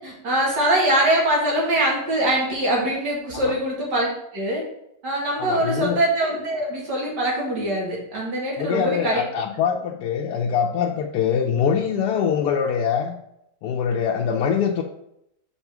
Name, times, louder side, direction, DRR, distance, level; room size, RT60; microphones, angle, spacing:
voice 1, 0.0-4.1 4.3-4.6 5.0-9.2, right 1 dB, 85° right, -2 dB, 2.5 m, -23 dB
voice 2, 5.4-6.0 8.6-13.1 13.6-14.8, left 7 dB, 75° left, 0 dB, 1.2 m, -23 dB
5.5 x 4.3 x 5.9 m, 0.79 s
omnidirectional pair, 1.8 m